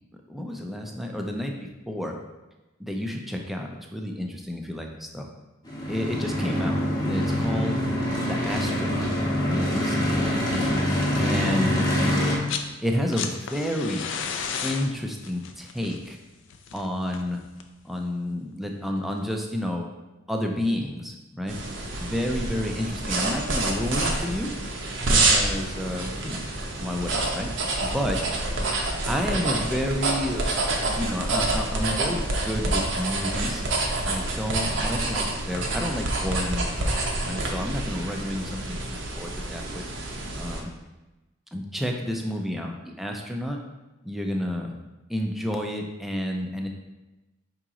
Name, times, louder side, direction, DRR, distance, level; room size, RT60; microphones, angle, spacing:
voice 1, 0.3-1.5 1.9-2.2 2.8-5.3 5.9-7.9 8.1-9.1 9.5-10.4 11.2-11.8 12.8-14.1 14.6-16.2 16.7-17.4 17.8-19.9 20.3-21.6 22.0-24.5 25.1-26.4 26.8-27.5 27.8-28.2 29.1-30.5 30.9-33.6 34.0-38.8 39.2-39.8 40.3-40.7 41.5-43.6 44.0-44.7 45.1-46.7, left 1 dB, ahead, 1 dB, 0.4 m, -30 dB
sound 1, 5.7-12.4, left 1 dB, 20° left, 0.9 m, -25 dB
sound 2, 12.4-12.7 13.0-17.8 19.1-19.2, left 6 dB, 70° left, 0.4 m, -34 dB
sound 3, 21.5-40.6, right 2 dB, 70° right, 0.7 m, -27 dB
4.9 x 2.9 x 3.6 m, 1.1 s
head